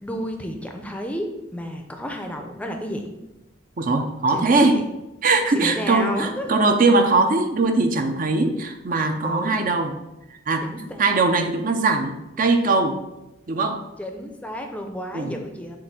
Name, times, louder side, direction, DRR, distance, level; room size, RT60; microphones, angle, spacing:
voice 1, 0.0-3.1 4.3-4.9 5.5-6.6 9.2-9.6 10.6-11.1 14.0-15.8, equal, 5° left, 3 dB, 0.5 m, -32 dB
voice 2, 3.8-4.8 5.2-9.9 10.5-10.7 11.0-13.0 13.5-13.8 15.1-15.3, right 3 dB, 40° right, 6 dB, 0.5 m, -20 dB
7.5 x 2.6 x 5.8 m, 0.95 s
head